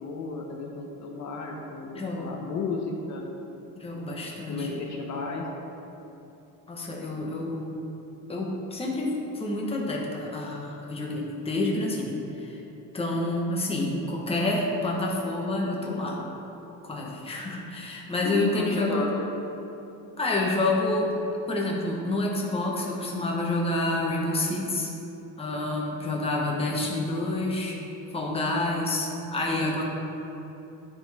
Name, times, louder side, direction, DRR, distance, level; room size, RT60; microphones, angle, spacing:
voice 1, 0.0-3.3 4.5-5.4 18.2-19.2, left 4 dB, 55° left, 0 dB, 0.8 m, -33 dB
voice 2, 1.9-2.5 3.8-4.8 6.7-7.8 8.3-12.6 12.9-16.2 16.8-19.1 20.2-21.1 21.5-24.9 25.4-27.8 28.1-29.8, left 2 dB, 15° left, -2 dB, 1.0 m, -28 dB
12.5 x 4.4 x 3.4 m, 3.0 s
cardioid pair, 150°, 35 cm